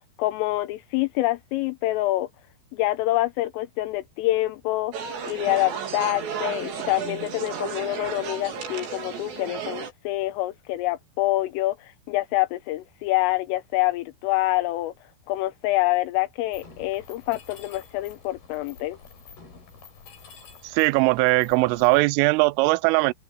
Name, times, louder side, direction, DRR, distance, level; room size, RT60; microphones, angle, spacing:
voice 1, 0.2-2.3 2.7-5.0 5.2-14.9 15.3-19.0, left 17 dB, 85° left, 3.6 m, -26 dB
sound 1, 4.9-9.9, right 7 dB, 60° right, 5.5 m, -33 dB
Mechanisms, 16.5-22.0, left 5 dB, 50° left, 6.8 m, -48 dB
voice 2, 20.7-23.1, right 24 dB, 85° right, 3.2 m, -20 dB
omnidirectional pair, 5.8 m